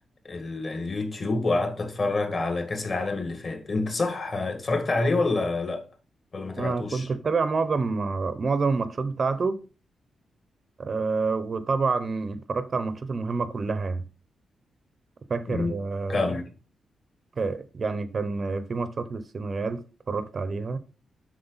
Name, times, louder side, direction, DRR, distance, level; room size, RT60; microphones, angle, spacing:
voice 1, 0.2-5.9 6.3-7.1 15.5-15.7 16.1-16.4, left 3 dB, 35° left, 1.9 m, -27 dB
voice 2, 6.6-9.6 10.8-14.0 15.3-16.2 17.4-20.8, right 4 dB, 35° right, 0.7 m, -28 dB
7.8 x 6.4 x 4.0 m
wide cardioid pair, 145°, 0 cm